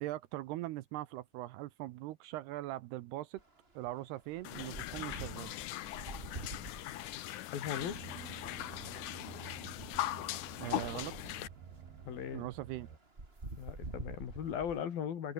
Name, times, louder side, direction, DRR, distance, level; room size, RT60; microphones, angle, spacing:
voice 1, 0.0-3.4 3.8-5.5 10.6-11.1 12.3-12.9, right 16 dB, 80° right, 2.7 m, -41 dB
sound 1, 3.4-3.5 3.8-14.8, right 2 dB, 15° right, 2.7 m, -48 dB
sound 2, 4.4-11.5, left 14 dB, 85° left, 1.7 m, -40 dB
voice 2, 7.5-8.0 12.1-12.5 13.6-15.3, left 8 dB, 60° left, 4.0 m, -38 dB
sound 3, 7.8-13.0, right 7 dB, 60° right, 5.2 m, -51 dB
open air
omnidirectional pair, 5.1 m